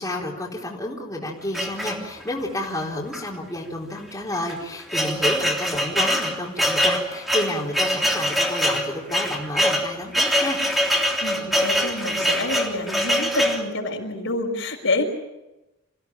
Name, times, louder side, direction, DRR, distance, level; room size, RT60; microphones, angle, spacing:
voice 1, 0.0-10.6, left 1 dB, 15° left, -3 dB, 4.1 m, -30 dB
sound 1, 1.5-2.4 3.1-3.3 3.5-3.6 4.3-13.7, equal, ahead, 3.4 m, -23 dB
voice 2, 11.2-15.0, left 2 dB, 70° left, 1 dB, 5.9 m, -27 dB
28.0 x 16.5 x 8.9 m, 0.99 s
head